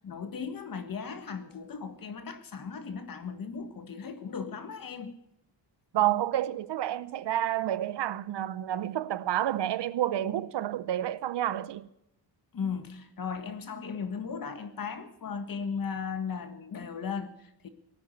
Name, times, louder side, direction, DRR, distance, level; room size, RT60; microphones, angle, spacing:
voice 1, 0.0-5.1 12.5-17.7, left 6 dB, 50° left, 1.6 m, -37 dB
voice 2, 5.9-11.9, right 12 dB, 65° right, 0.8 m, -29 dB
17.0 x 9.4 x 8.0 m
cardioid pair, 100°, 45 cm